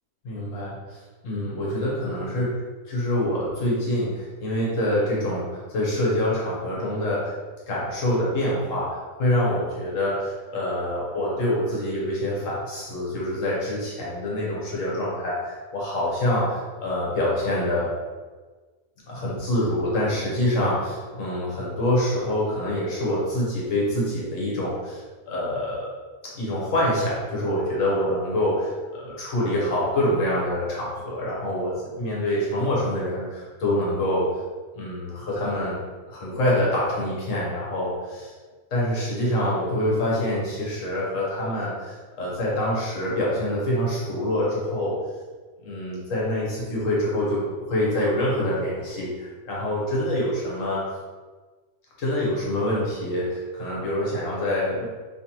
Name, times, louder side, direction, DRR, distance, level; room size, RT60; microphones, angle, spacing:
voice 1, 0.2-2.6 2.9-7.3 7.7-17.9 19.1-25.9 26.2-34.3 34.7-35.8 36.1-38.3 38.7-45.0 45.6-50.8 52.0-54.8, left 1 dB, 65° left, -5 dB, 1.5 m, -26 dB
3.9 x 3.2 x 3.0 m, 1.4 s
omnidirectional pair, 1.5 m